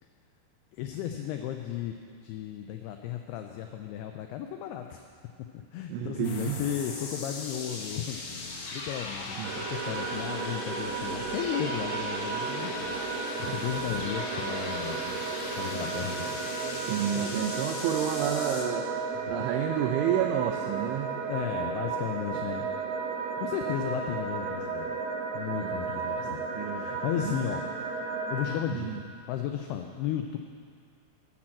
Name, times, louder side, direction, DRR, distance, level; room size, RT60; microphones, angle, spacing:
voice 1, 0.7-2.0 2.2-5.0 5.5-8.3 8.7-16.6 17.1-17.2 19.2-19.3 21.3-22.7 23.4-25.0 25.3-26.5 26.7-27.7 28.3-30.4, left 10 dB, 85° left, 5 dB, 2.3 m, -35 dB
voice 2, 5.9-6.6 9.4-9.5 16.9-18.9 19.3-21.2 25.5-25.8 26.2-26.9 27.2-27.5 28.7-29.0, right 9 dB, 90° right, 4 dB, 3.1 m, -30 dB
sound 1, 6.2-18.6, left 3 dB, 65° left, 1.5 m, -39 dB
sound 2, 9.4-28.6, right 5 dB, 70° right, 2.2 m, -34 dB
12.0 x 10.5 x 7.5 m, 2.2 s
omnidirectional pair, 5.3 m